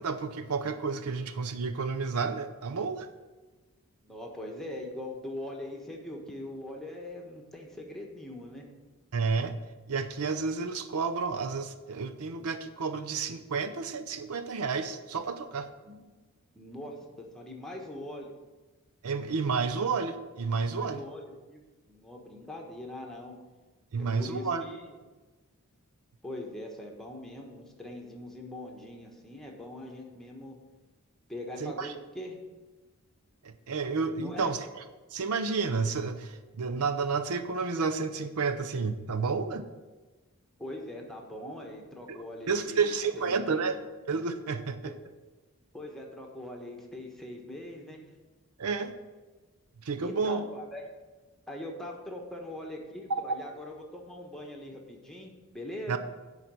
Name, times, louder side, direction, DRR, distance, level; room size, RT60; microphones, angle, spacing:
voice 1, 0.0-3.1 9.1-9.5 9.9-15.7 19.0-21.0 23.9-24.6 31.6-31.9 33.4-34.8 35.1-39.6 42.1-43.8 44.1-44.9 48.6-48.9 49.8-50.4 55.9-56.0, right 4 dB, 75° right, 9 dB, 0.6 m, -31 dB
voice 2, 4.0-8.6 15.8-16.0 16.6-17.0 17.3-18.3 20.8-23.3 24.0-24.9 26.2-30.6 31.3-32.4 34.1-34.5 40.6-43.7 44.8-44.9 45.7-48.0 50.0-50.9 51.5-56.0, left 1 dB, ahead, 0 dB, 1.3 m, -42 dB
10.0 x 4.1 x 7.5 m, 1.2 s
head